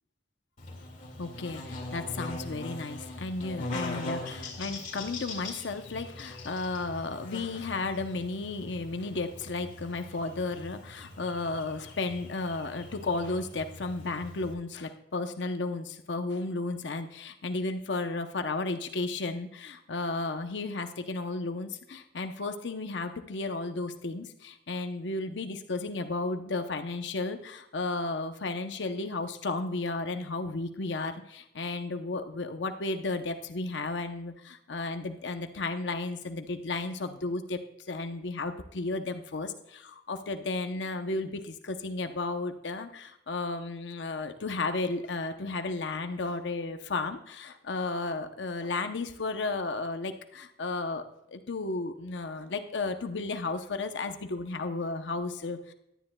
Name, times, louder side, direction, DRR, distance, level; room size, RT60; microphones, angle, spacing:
Buzz, 0.6-14.5, left 2 dB, 45° left, 2.0 m, -41 dB
voice 1, 1.2-51.0 51.3-55.7, left 3 dB, 70° left, 7 dB, 0.7 m, -33 dB
17.0 x 10.0 x 2.2 m, 0.84 s
head